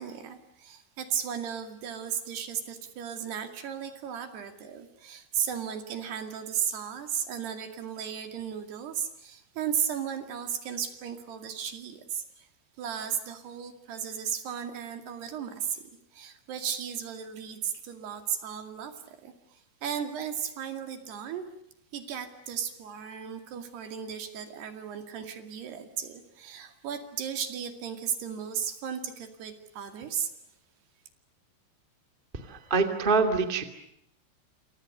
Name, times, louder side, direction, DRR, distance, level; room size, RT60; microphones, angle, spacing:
voice 1, 0.0-12.5 12.8-21.4 21.9-30.3, right 8 dB, 65° right, 7 dB, 4.2 m, -35 dB
voice 2, 32.3-33.6, right 4 dB, 20° right, 6 dB, 1.5 m, -25 dB
28.5 x 28.0 x 6.7 m, 0.76 s
omnidirectional pair, 5.4 m